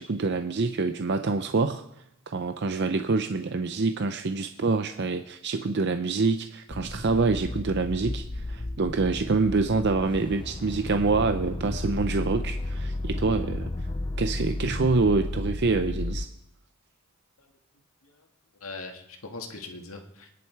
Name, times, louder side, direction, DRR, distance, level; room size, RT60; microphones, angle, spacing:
voice 1, 0.0-1.8 2.3-13.7 14.2-16.3, right 3 dB, 50° right, 8 dB, 0.6 m, -26 dB
sound 1, 6.7-16.3, left 2 dB, 20° left, 0.5 m, -33 dB
voice 2, 18.6-20.3, left 3 dB, 80° left, 4 dB, 2.0 m, -41 dB
23.5 x 10.5 x 4.6 m, 0.83 s
head